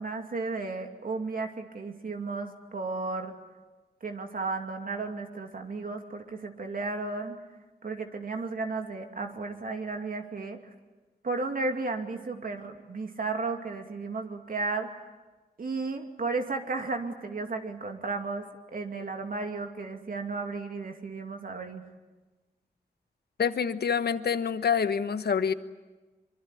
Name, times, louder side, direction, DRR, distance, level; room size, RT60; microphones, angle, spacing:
voice 1, 0.0-3.3 4.0-7.4 7.8-10.6 11.2-14.9 15.6-21.8, right 3 dB, 55° right, 4 dB, 2.6 m, -34 dB
voice 2, 23.4-25.5, left 6 dB, 75° left, 11 dB, 1.3 m, -26 dB
24.5 x 24.0 x 9.9 m, 1.2 s
wide cardioid pair, 90°, 17 cm